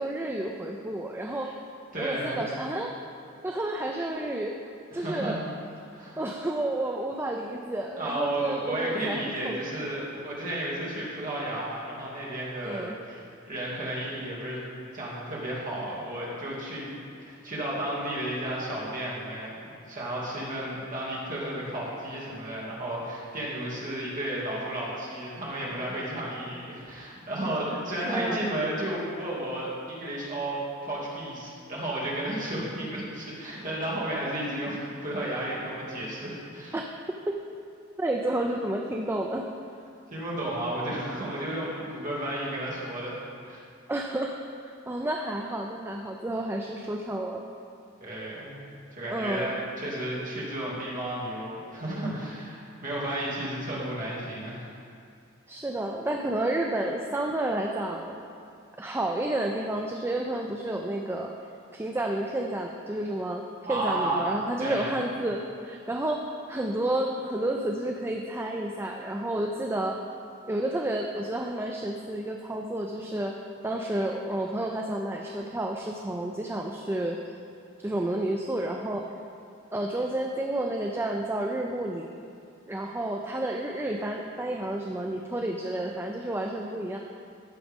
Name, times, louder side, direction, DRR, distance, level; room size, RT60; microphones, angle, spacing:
voice 1, 0.0-1.5 2.0-2.9 3.4-4.6 4.9-5.4 6.2-9.9 12.6-13.0 27.7-28.5 36.7-36.9 37.3-37.4 38.0-39.5 43.9-44.4 44.6-47.4 49.1-49.5 55.5-58.3 58.8-61.3 61.7-70.0 70.5-73.4 73.6-77.2 77.8-79.1 79.7-82.1 82.7-87.0, right 1 dB, 10° right, 2 dB, 0.4 m, -30 dB
voice 2, 1.9-2.5 4.9-5.4 5.9-6.2 8.0-14.6 14.9-16.9 17.2-36.8 40.1-43.2 43.4-43.6 48.0-48.6 48.9-54.7 63.7-64.2 64.6-65.0, right 1 dB, 40° right, -7 dB, 2.3 m, -33 dB
14.5 x 6.1 x 3.6 m, 2.5 s
head